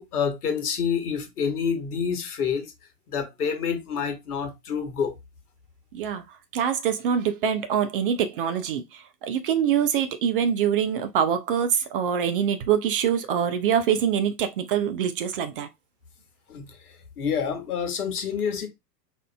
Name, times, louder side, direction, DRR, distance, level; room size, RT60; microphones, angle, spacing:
voice 1, 0.0-2.7 3.1-5.1 16.5-18.7, left 6 dB, 65° left, 1.1 m, -28 dB
voice 2, 5.9-6.2 6.5-15.7, right 8 dB, 35° right, 0.4 m, -24 dB
4.3 x 2.5 x 2.3 m
figure-of-eight pair, 95°, 50 cm